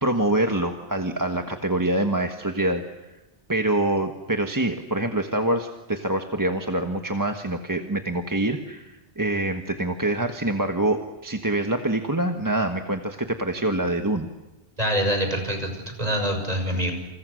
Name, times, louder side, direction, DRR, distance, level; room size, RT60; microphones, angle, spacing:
voice 1, 0.0-2.8 3.5-14.3, right 1 dB, 20° right, 4 dB, 1.4 m, -25 dB
voice 2, 14.8-16.9, equal, 40° right, 5 dB, 6.1 m, -25 dB
29.5 x 29.0 x 6.5 m, 1.1 s
omnidirectional pair, 1.1 m